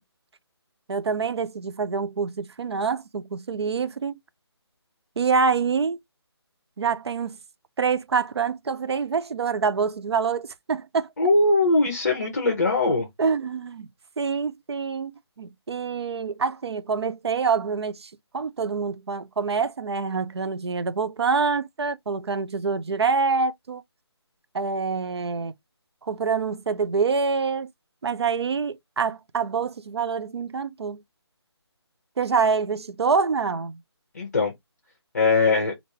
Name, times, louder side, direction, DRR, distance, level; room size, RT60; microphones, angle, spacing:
voice 1, 0.9-4.2 5.2-6.0 6.8-7.4 7.8-11.1 13.2-13.9 14.2-23.8 24.5-25.5 26.0-27.7 28.0-31.0 32.2-33.8, right 5 dB, 70° right, 0.5 m, -26 dB
voice 2, 11.2-13.1 34.1-34.5 35.1-35.7, left 3 dB, 40° left, 0.8 m, -21 dB
3.5 x 2.5 x 2.8 m
hypercardioid pair, 180°, 14 cm